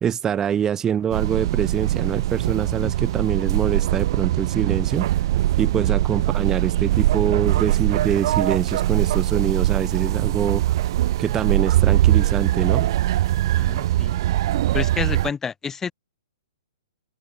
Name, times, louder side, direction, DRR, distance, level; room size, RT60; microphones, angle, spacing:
voice 1, 0.0-5.1 5.6-10.6 11.2-12.9, right 8 dB, 15° right, 1.2 m, -24 dB
sound 1, 1.1-15.3, right 14 dB, 45° right, 1.0 m, -21 dB
voice 2, 13.5-14.2 14.7-15.9, left 6 dB, 10° left, 0.8 m, -29 dB
figure-of-eight pair, 120°, 3 cm